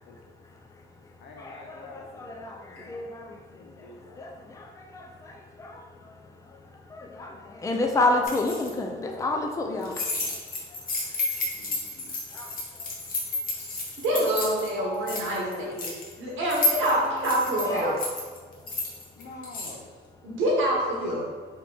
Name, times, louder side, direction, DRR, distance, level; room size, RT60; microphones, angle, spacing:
voice 1, 0.0-11.3 12.3-12.9 17.7-18.0 18.6-19.0 19.2-19.3, left 2 dB, 15° left, 2 dB, 0.4 m, -32 dB
voice 2, 1.2-3.1 3.5-4.6 10.2-10.3 11.6-12.1 14.1-15.8 16.9-18.0 19.1-19.8, left 3 dB, 65° left, 1 dB, 0.6 m, -42 dB
sound 1, 8.2-8.7 9.8-14.7 14.9-16.1 16.5-19.7, left 2 dB, 45° left, 1.0 m, -31 dB
voice 3, 14.0-15.9 16.2-18.0 20.2-21.2, right 1 dB, 75° right, -3 dB, 1.0 m, -26 dB
3.5 x 2.9 x 3.8 m, 1.5 s
cardioid pair, 90°, 20 cm